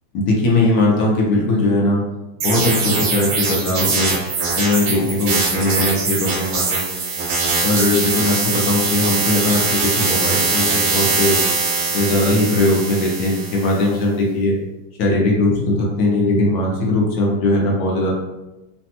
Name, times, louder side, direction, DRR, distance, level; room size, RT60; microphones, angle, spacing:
voice 1, 0.1-2.0 2.4-4.2 4.5-7.1 7.6-11.4 11.9-14.6 15.0-18.2, left 2 dB, 65° left, -2 dB, 1.1 m, -19 dB
sound 1, 2.4-13.8, right 4 dB, 80° right, 1.4 m, -21 dB
3.3 x 2.2 x 2.8 m, 1.0 s
omnidirectional pair, 2.0 m